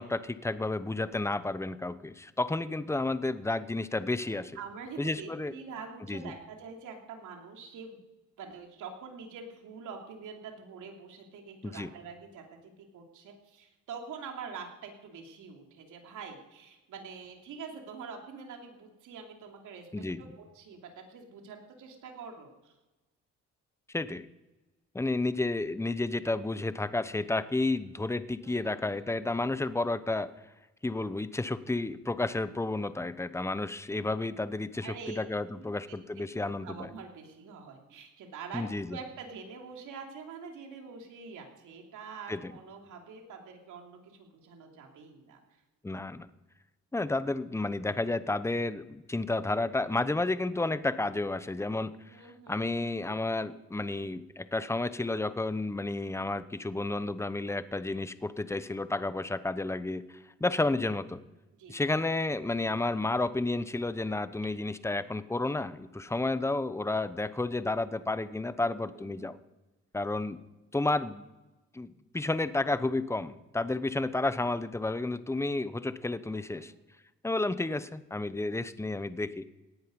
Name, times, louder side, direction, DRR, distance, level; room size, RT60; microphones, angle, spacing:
voice 1, 0.0-4.6 5.0-5.5 6.1-6.3 11.6-11.9 19.9-20.2 23.9-24.2 24.9-30.3 30.8-36.9 38.5-39.0 42.3-42.5 45.8-46.3 46.9-51.9 52.2-60.0 60.4-61.2 61.7-69.3 69.9-70.4 70.7-71.2 71.7-76.7 77.2-79.4, left 2 dB, 10° left, 14 dB, 0.8 m, -31 dB
voice 2, 4.5-8.0 8.4-12.4 12.9-22.7 28.4-29.6 34.8-35.2 35.6-45.4 52.1-52.6 60.4-60.6 61.6-62.0 68.9-69.3 76.3-76.7, right 5 dB, 80° right, 2 dB, 3.0 m, -45 dB
18.0 x 10.5 x 5.3 m, 1.1 s
cardioid pair, 90°, 30 cm